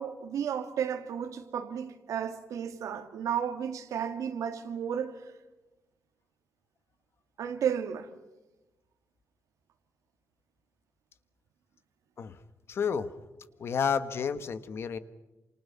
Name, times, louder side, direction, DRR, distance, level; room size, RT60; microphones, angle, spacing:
voice 1, 0.0-5.3 7.4-8.1, right 8 dB, 90° right, 2.4 m, -33 dB
voice 2, 12.7-13.1 13.6-15.0, left 6 dB, 50° left, 1.4 m, -30 dB
29.0 x 27.5 x 5.7 m
wide cardioid pair, 170°, 5 cm